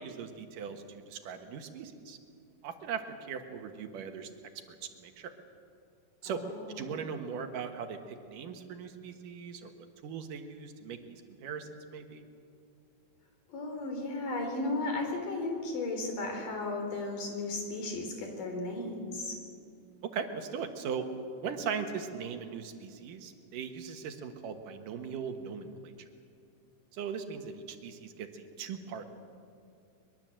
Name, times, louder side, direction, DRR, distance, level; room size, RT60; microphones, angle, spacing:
voice 1, 0.0-2.2 2.6-4.3 4.7-5.3 6.2-6.4 6.7-9.7 10.0-12.2 20.0-21.1 21.4-25.9 26.9-29.1, right 6 dB, 75° right, 6 dB, 3.0 m, -39 dB
voice 2, 6.3-6.8 13.5-19.4, left 2 dB, 75° left, 3 dB, 5.3 m, -35 dB
23.0 x 22.5 x 7.7 m, 2.4 s
omnidirectional pair, 3.8 m